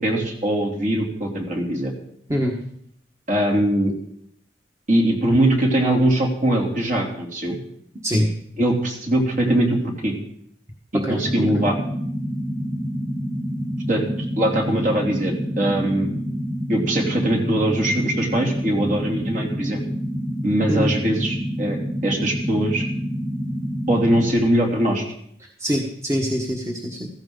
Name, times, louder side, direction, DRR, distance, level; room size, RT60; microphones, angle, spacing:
voice 1, 0.0-1.9 3.3-3.9 4.9-7.6 8.6-10.1 10.9-11.7 13.9-16.1 16.7-19.8 20.4-21.8 22.0-22.8 23.9-25.0, right 1 dB, 45° right, 1 dB, 3.1 m, -21 dB
sound 1, 11.2-24.3, equal, ahead, 1.0 m, -27 dB
voice 2, 25.6-27.1, equal, 15° right, 0 dB, 1.4 m, -23 dB
15.5 x 14.5 x 3.9 m, 0.69 s
head